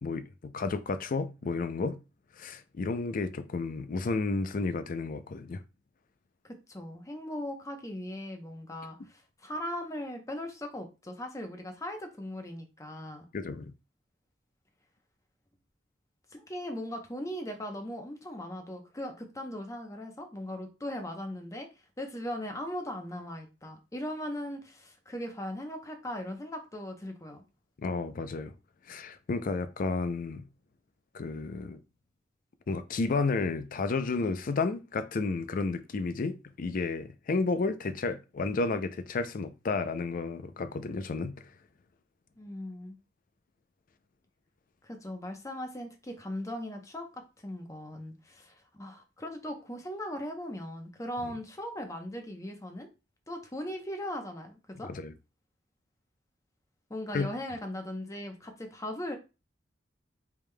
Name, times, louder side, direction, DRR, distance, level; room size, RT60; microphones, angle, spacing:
voice 1, 0.0-2.0 2.4-5.6 13.3-13.7 27.8-28.5 28.9-30.5 31.1-31.8 32.7-41.4 51.2-51.3 54.9-55.1 57.1-57.3, left 3 dB, 50° left, 0.4 m, -32 dB
voice 2, 6.4-13.3 16.3-21.7 22.0-27.4 42.4-43.0 44.8-52.9 53.3-54.9 56.9-59.2, left 1 dB, 15° left, 0.8 m, -39 dB
4.8 x 3.5 x 2.2 m
head